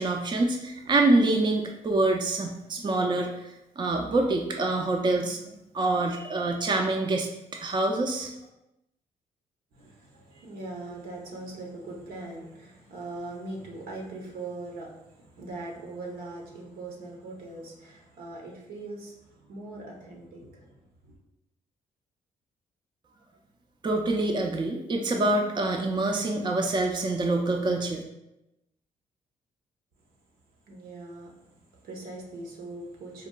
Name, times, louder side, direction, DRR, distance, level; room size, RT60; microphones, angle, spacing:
voice 1, 0.0-3.5 3.8-5.4 5.7-8.3 23.8-28.0, right 2 dB, 30° right, 2 dB, 0.4 m, -26 dB
voice 2, 9.7-20.8 21.0-21.1 30.7-33.3, right 2 dB, 75° right, -1 dB, 0.7 m, -41 dB
3.8 x 2.2 x 2.2 m, 0.89 s
supercardioid pair, 50°, 16 cm